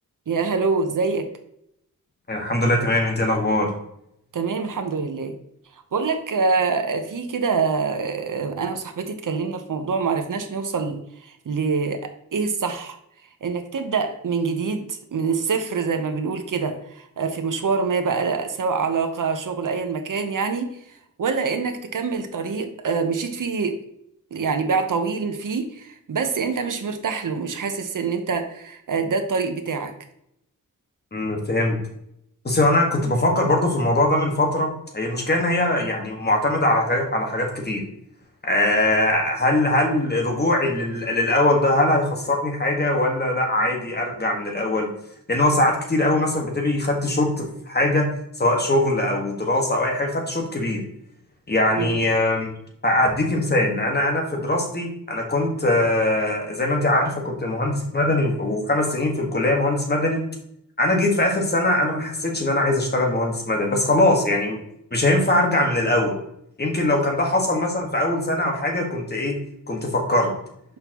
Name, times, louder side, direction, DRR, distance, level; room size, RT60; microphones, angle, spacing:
voice 1, 0.3-1.3 4.3-5.4 5.9-13.0 13.4-20.8 21.2-23.8 24.3-29.9 51.8-51.9, right 5 dB, 60° right, 6 dB, 1.0 m, -25 dB
voice 2, 2.3-3.7 31.1-31.8 32.4-37.8 38.4-44.9 45.3-48.0 48.4-50.8 51.5-52.5 52.8-60.2 60.8-64.6 64.9-66.1 66.6-69.3 69.7-70.3, left 1 dB, 30° left, 1 dB, 1.6 m, -21 dB
6.6 x 5.4 x 3.0 m, 0.76 s
wide cardioid pair, 120°, 35 cm